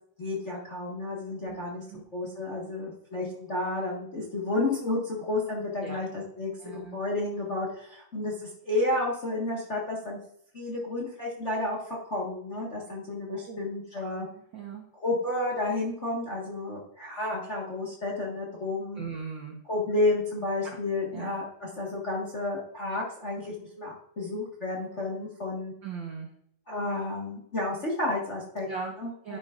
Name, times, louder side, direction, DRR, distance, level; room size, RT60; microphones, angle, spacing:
voice 1, 0.2-1.8 2.1-10.2 10.5-14.3 15.0-19.0 19.6-25.7 26.7-28.7 29.0-29.4, left 2 dB, 35° left, -2 dB, 1.1 m, -31 dB
voice 2, 6.6-7.0 13.3-13.7 14.0-14.2 14.5-14.8 19.0-19.6 20.6-20.8 21.1-21.3 25.8-26.3 28.6-28.9 29.2-29.4, right 5 dB, 75° right, 1 dB, 1.0 m, -38 dB
10.5 x 10.0 x 2.5 m, 0.72 s
omnidirectional pair, 3.8 m